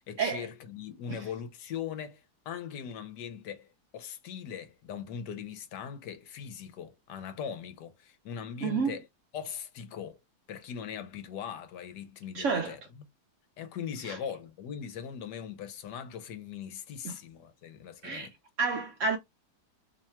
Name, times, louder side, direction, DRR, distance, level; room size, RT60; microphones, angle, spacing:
voice 1, 0.0-9.1 9.3-10.2 10.5-13.1 13.6-18.3, left 8 dB, 90° left, 1.4 m, -40 dB
voice 2, 8.6-8.9 12.3-12.7 14.1-14.2 17.0-17.1 18.0-18.3 18.6-19.2, right 5 dB, 70° right, 0.7 m, -29 dB
3.1 x 2.3 x 4.2 m
omnidirectional pair, 1.8 m